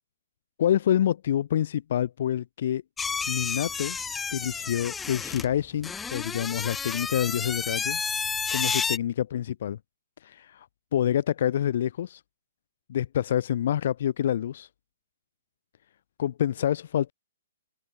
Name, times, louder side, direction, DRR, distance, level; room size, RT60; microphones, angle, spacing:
voice 1, 0.6-2.8 3.3-4.0 4.3-8.0 8.5-9.8 10.2-10.7 10.9-12.2 12.9-14.7 16.2-17.1, left 10 dB, 60° left, 1.5 m, -27 dB
sound 1, 3.0-9.0, left 5 dB, 10° left, 0.7 m, -31 dB
open air
hypercardioid pair, 140°, 0 cm